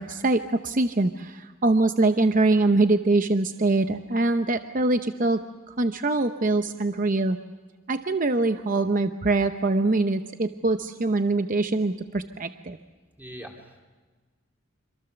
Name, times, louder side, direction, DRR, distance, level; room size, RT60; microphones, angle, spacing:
voice 1, 0.0-5.4 5.8-7.4 7.9-12.8, right 2 dB, 40° right, 8 dB, 0.7 m, -23 dB
voice 2, 13.2-13.8, equal, 10° right, 1 dB, 3.6 m, -42 dB
26.0 x 26.0 x 7.0 m, 1.3 s
head